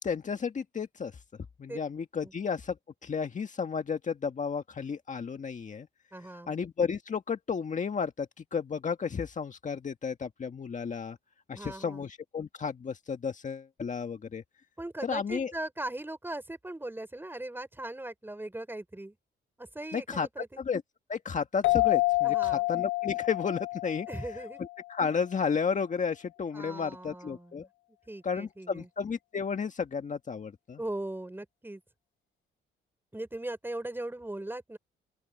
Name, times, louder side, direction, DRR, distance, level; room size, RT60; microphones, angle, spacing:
voice 1, 0.0-1.2 1.6-5.9 6.5-11.2 11.5-14.4 15.0-15.5 19.9-20.8 21.1-24.1 24.9-27.7 28.2-30.8, left 6 dB, 40° left, 1.7 m, -33 dB
voice 2, 6.1-6.5 11.5-12.1 14.8-19.2 19.6-20.6 22.2-22.6 24.1-24.6 26.5-27.7 28.1-28.9 30.8-31.8 33.1-34.8, right 1 dB, 10° right, 4.8 m, -39 dB
sound 1, 21.6-24.9, left 21 dB, 75° left, 0.7 m, -28 dB
open air
cardioid pair, 90°, 20 cm